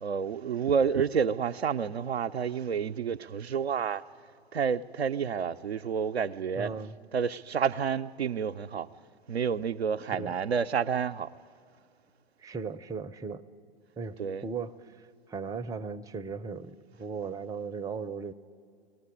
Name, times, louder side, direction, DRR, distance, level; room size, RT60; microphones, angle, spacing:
voice 1, 0.0-4.0 4.5-6.7 7.1-8.9 9.3-11.3 14.2-14.4, right 6 dB, 90° right, 0.5 m, -29 dB
voice 2, 6.6-6.9 10.1-10.4 12.4-13.4 14.0-15.0 15.3-18.3, right 5 dB, 10° right, 0.5 m, -37 dB
22.0 x 19.0 x 9.7 m
figure-of-eight pair, 95°, 31 cm